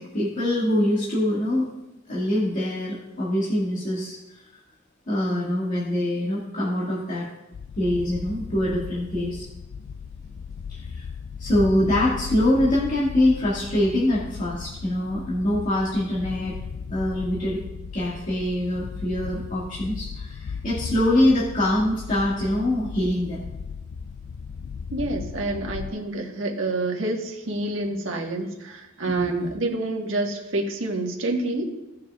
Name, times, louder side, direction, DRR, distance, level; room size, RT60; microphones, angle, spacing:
voice 1, 0.0-1.7 2.1-4.4 5.1-7.3 7.8-9.5 10.7-11.0 11.4-16.6 16.9-17.6 17.9-23.4 29.1-29.5, left 1 dB, 40° left, -8 dB, 1.9 m, -24 dB
sound 1, 7.5-25.9, left 6 dB, 65° left, 0.3 m, -36 dB
voice 2, 24.9-31.6, right 2 dB, 80° right, 1 dB, 1.5 m, -28 dB
17.5 x 6.8 x 2.4 m, 0.98 s
head